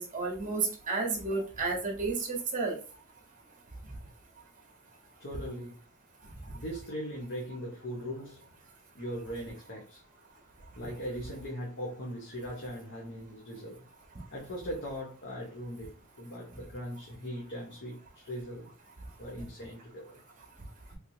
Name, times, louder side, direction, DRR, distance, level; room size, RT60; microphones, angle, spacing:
voice 1, 0.1-2.7, right 3 dB, 40° right, 1.1 m, -31 dB
voice 2, 5.2-5.8 6.5-8.5 8.9-10.0 10.8-13.8 14.3-18.7 19.2-20.2, equal, 50° left, 0.8 m, -40 dB
3.4 x 2.9 x 2.7 m
head